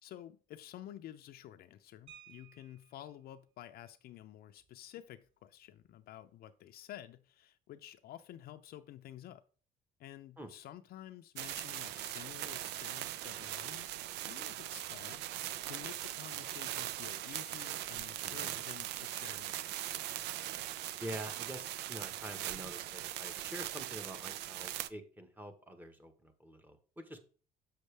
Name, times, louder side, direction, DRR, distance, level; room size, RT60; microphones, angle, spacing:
voice 1, 0.0-9.4 10.0-13.9 14.3-19.7, left 12 dB, 65° left, 0.5 m, -51 dB
sound 1, 2.1-3.2 4.6-4.7 5.1-5.3 5.6-5.9, right 10 dB, 35° right, 2.6 m, -58 dB
sound 2, 11.4-24.9, right 14 dB, 85° right, 0.5 m, -40 dB
voice 2, 18.2-18.6 21.0-27.2, right 1 dB, 10° right, 1.1 m, -46 dB
7.6 x 6.5 x 3.3 m
cardioid pair, 110°, 17 cm